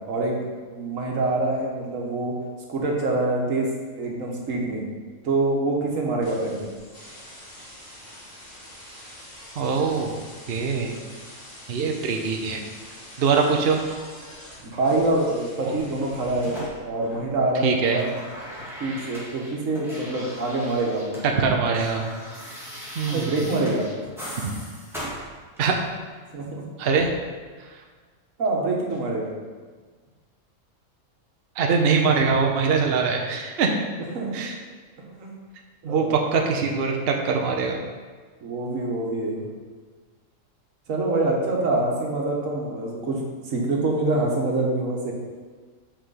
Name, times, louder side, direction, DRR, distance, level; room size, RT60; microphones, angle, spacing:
voice 1, 0.1-0.4 0.7-2.4 2.7-3.7 4.0-4.8 5.2-6.7 14.7-16.6 16.8-18.1 18.8-21.2 23.0-23.9 26.3-26.6 28.4-29.3 34.1-34.3 35.2-35.3 35.9-36.2 38.4-39.5 40.9-45.1, right 2 dB, 90° right, -1 dB, 1.6 m, -25 dB
sound 1, 6.2-16.7, equal, 35° left, 1.8 m, -45 dB
voice 2, 9.6-10.1 10.5-11.0 11.7-12.6 13.2-13.8 15.6-15.7 17.6-18.0 21.4-22.2 23.0-23.4 24.4-24.5 25.6-25.8 26.8-27.1 31.6-33.7 34.3-34.5 35.8-37.8, right 5 dB, 55° right, 2 dB, 0.9 m, -23 dB
sound 2, 15.8-17.5 17.7-21.3 21.5-26.0 27.0-27.1, equal, ahead, 1.9 m, -39 dB
5.8 x 4.9 x 5.6 m, 1.5 s
omnidirectional pair, 1.3 m